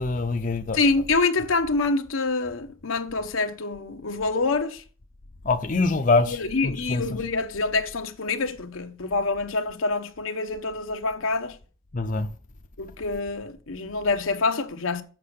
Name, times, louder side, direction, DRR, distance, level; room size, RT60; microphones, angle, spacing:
voice 1, 0.0-0.8 5.4-7.0 11.9-12.3, left 3 dB, 40° left, 0.6 m, -24 dB
voice 2, 0.7-4.8 6.3-11.6 12.8-15.0, left 3 dB, 85° left, 1.0 m, -26 dB
7.6 x 6.2 x 6.6 m
head